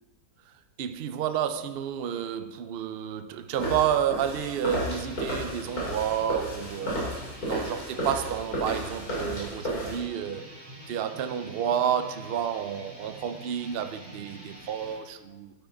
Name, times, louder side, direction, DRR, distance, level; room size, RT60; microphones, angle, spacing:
voice 1, 0.8-7.1 7.5-10.5 10.9-15.5, right 9 dB, 60° right, 0.6 m, -30 dB
sound 1, 3.6-10.0, equal, 70° left, 4.5 m, -33 dB
sound 2, 4.6-15.0, right 1 dB, 30° right, 2.8 m, -47 dB
12.5 x 8.8 x 3.8 m
omnidirectional pair, 1.6 m